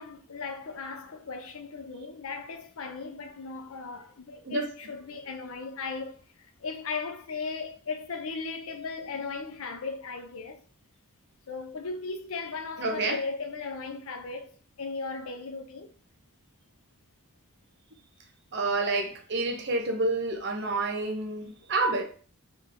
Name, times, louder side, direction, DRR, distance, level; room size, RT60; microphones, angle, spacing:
voice 1, 0.0-10.6 11.5-15.9, left 4 dB, 65° left, 0.6 m, -37 dB
voice 2, 12.8-13.2 18.5-22.0, right 2 dB, 50° right, 0.8 m, -28 dB
3.7 x 3.2 x 3.3 m
head